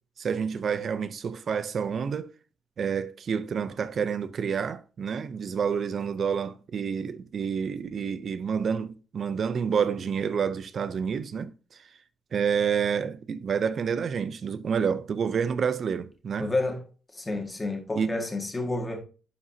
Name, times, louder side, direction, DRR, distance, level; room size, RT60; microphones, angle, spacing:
voice 1, 0.2-2.3 2.8-11.5 12.3-16.5 18.0-18.2, right 6 dB, 55° right, 0.7 m, -28 dB
voice 2, 16.4-16.8 17.1-19.0, left 2 dB, 20° left, 2.0 m, -30 dB
11.0 x 4.9 x 2.9 m
cardioid pair, 105°, 0 cm